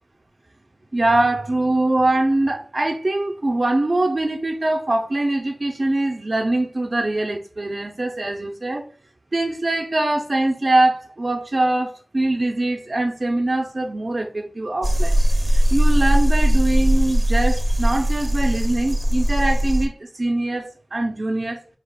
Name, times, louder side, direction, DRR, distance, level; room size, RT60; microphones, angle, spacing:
voice 1, 0.9-8.8 9.3-15.2 15.5-21.6, right 2 dB, 45° right, 0.7 m, -22 dB
sound 1, 14.8-19.9, equal, 15° right, 0.7 m, -19 dB
4.8 x 2.5 x 3.6 m
wide cardioid pair, 80°, 0 cm